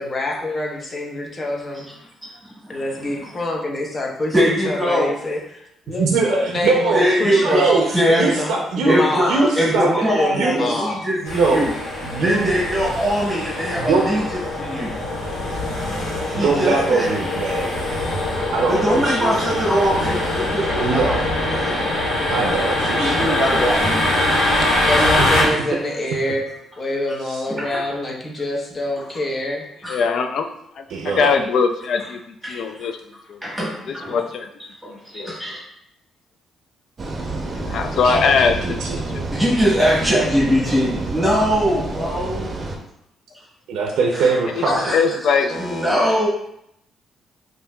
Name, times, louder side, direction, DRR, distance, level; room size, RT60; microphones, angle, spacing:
voice 1, 0.0-1.9 2.7-4.3 4.7-7.6 8.2-9.4 9.9-11.0 24.9-26.4 26.8-29.6 45.5-45.9, left 1 dB, 35° left, -1 dB, 0.9 m, -26 dB
voice 2, 2.6-3.3 4.3-5.1 6.9-8.3 8.8-11.7 12.2-14.9 16.3-17.1 18.6-21.2 21.5-21.8 23.0-24.3 25.4-25.5 27.5-27.8 29.8-30.0 32.4-32.9 33.4-34.2 34.8-35.6 39.3-42.5 44.1-44.3 44.6-46.3, equal, 10° right, -6 dB, 1.4 m, -22 dB
voice 3, 6.0-8.9 9.3-10.0 10.3-10.7 11.2-11.7 12.0-12.5 12.8-12.9 13.8-14.2 15.4-15.6 16.3-17.7 18.5-19.5 20.8-21.2 22.3-23.3 25.0-25.6 27.2-27.4 30.9-31.4 38.0-39.1 43.7-44.9, right 4 dB, 80° right, 0 dB, 0.5 m, -22 dB
sound 1, 11.3-25.4, left 1 dB, 85° left, 1.4 m, -23 dB
voice 4, 29.9-30.5 30.8-32.2 32.5-33.0 33.3-33.4 34.1-34.5 34.9-35.3 37.7-38.8 39.1-39.2 44.6-45.5, left 5 dB, 65° left, 7 dB, 0.4 m, -21 dB
sound 2, 37.0-42.8, right 2 dB, 40° right, 0.6 m, -28 dB
5.2 x 2.6 x 2.3 m, 0.76 s
cardioid pair, 90°, 0 cm